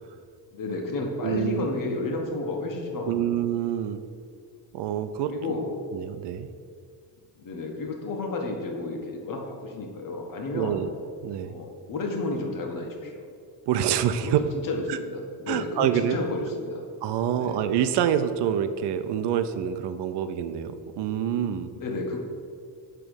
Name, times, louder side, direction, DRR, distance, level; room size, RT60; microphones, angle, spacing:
voice 1, 0.5-3.3 5.3-5.7 7.4-10.8 11.4-13.3 14.2-14.3 14.6-16.8 17.3-17.6 21.7-22.2, left 2 dB, 50° left, 2 dB, 1.3 m, -32 dB
voice 2, 1.2-1.7 3.1-4.0 4.7-5.3 5.9-6.5 10.5-10.9 11.2-11.6 13.7-14.4 14.9-15.0 15.5-16.2 17.0-21.7, right 9 dB, 80° right, 10 dB, 0.6 m, -26 dB
8.8 x 3.4 x 6.3 m, 2.2 s
cardioid pair, 130°, 40 cm